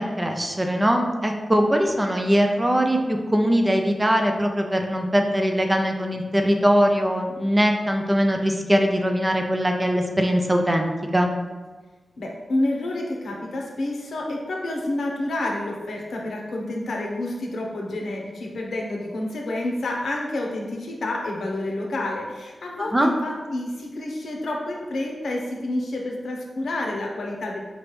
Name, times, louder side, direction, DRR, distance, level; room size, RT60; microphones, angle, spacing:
voice 1, 0.0-11.3 22.8-23.1, equal, 15° right, 3 dB, 0.3 m, -21 dB
voice 2, 12.2-27.6, left 1 dB, 85° left, -1 dB, 0.8 m, -29 dB
4.9 x 3.2 x 3.1 m, 1.3 s
wide cardioid pair, 180°, 0 cm